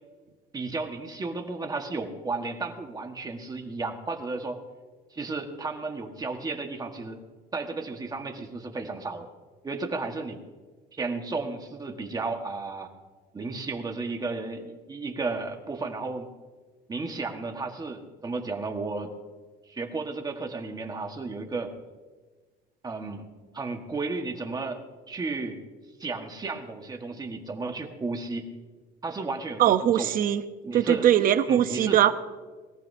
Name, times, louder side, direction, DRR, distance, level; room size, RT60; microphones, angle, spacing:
voice 1, 0.5-4.6 5.1-7.2 7.5-9.3 9.6-10.4 10.9-12.9 13.3-16.3 16.9-19.1 19.7-21.7 22.8-23.3 23.5-25.6 26.0-28.5 29.0-30.1 30.6-31.1 31.5-32.0, right 3 dB, 20° right, 4 dB, 1.5 m, -33 dB
voice 2, 29.6-30.4 30.7-32.1, right 11 dB, 50° right, 11 dB, 0.8 m, -21 dB
22.0 x 14.5 x 2.7 m, 1.4 s
cardioid pair, 135°, 19 cm